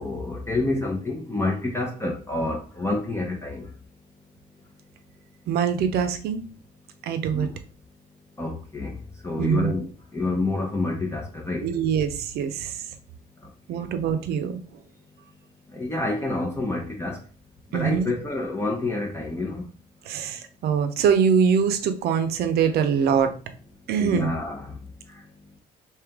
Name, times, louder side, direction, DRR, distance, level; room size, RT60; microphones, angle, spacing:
voice 1, 0.0-3.7 7.3-7.6 8.4-11.7 13.4-13.9 15.7-17.3 17.7-19.7 24.0-25.6, left 2 dB, 15° left, 0.7 m, -29 dB
voice 2, 5.5-6.4 7.1-7.5 9.4-9.7 11.6-12.8 13.7-14.6 17.7-18.1 20.1-23.3 23.9-24.3, right 7 dB, 70° right, 0.6 m, -23 dB
3.3 x 2.8 x 3.5 m
cardioid pair, 110°, 17 cm